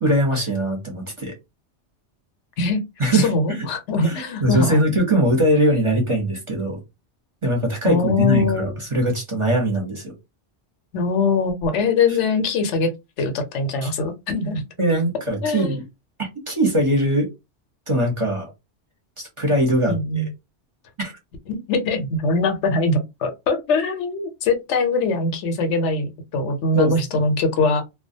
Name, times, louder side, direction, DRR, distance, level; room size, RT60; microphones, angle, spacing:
voice 1, 0.0-1.3 3.0-3.6 4.0-6.8 7.4-10.1 13.8-13.9 14.8-15.8 16.5-17.3 17.9-18.5 19.2-20.2 21.0-21.1 26.7-27.2, right 1 dB, 30° right, 0.7 m, -21 dB
voice 2, 3.1-4.8 7.8-8.8 10.9-12.9 13.2-14.6 15.4-15.8 19.9-20.3 21.5-27.8, left 3 dB, 85° left, 1.0 m, -22 dB
2.3 x 2.2 x 2.6 m
omnidirectional pair, 1.2 m